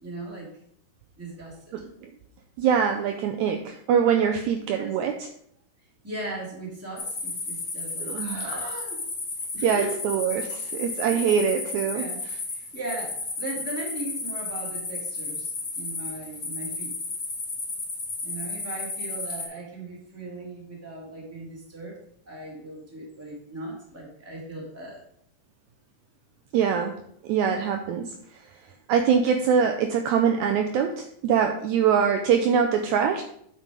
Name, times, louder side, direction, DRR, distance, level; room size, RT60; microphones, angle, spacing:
voice 1, 0.0-0.5 1.2-1.6 4.8-5.0 6.0-9.0 9.5-10.1 11.1-11.4 11.9-12.2 12.5-16.9 18.2-21.9 22.3-25.0, right 2 dB, 5° right, -4 dB, 1.8 m, -38 dB
voice 2, 2.6-5.1 8.0-8.7 9.6-12.1 26.5-26.9 27.2-28.1 28.9-33.2, right 7 dB, 85° right, 5 dB, 1.6 m, -23 dB
sound 1, 7.0-19.5, left 3 dB, 35° left, 1.8 m, -33 dB
8.2 x 5.3 x 4.9 m, 0.70 s
omnidirectional pair, 3.9 m